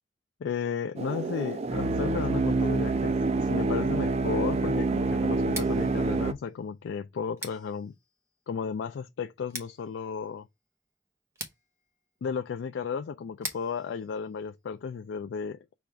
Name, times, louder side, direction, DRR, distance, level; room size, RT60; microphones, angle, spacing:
voice 1, 0.4-7.9 8.5-10.5 12.2-15.6, left 6 dB, 80° left, 0.3 m, -34 dB
sound 1, 1.0-6.3, right 3 dB, 35° right, 0.3 m, -27 dB
Scissors, 5.4-15.2, right 2 dB, 15° right, 0.8 m, -46 dB
5.1 x 2.4 x 4.3 m
head